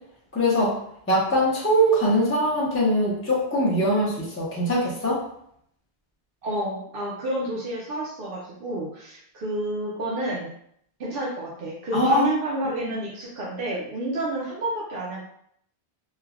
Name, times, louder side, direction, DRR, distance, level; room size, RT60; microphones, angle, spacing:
voice 1, 0.3-0.8 1.1-5.2 11.9-12.3 12.7-12.8, equal, 20° left, -6 dB, 0.4 m, -22 dB
voice 2, 6.4-10.5 11.0-15.2, right 1 dB, 65° right, -4 dB, 0.8 m, -30 dB
3.2 x 2.1 x 2.3 m, 0.68 s
omnidirectional pair, 1.0 m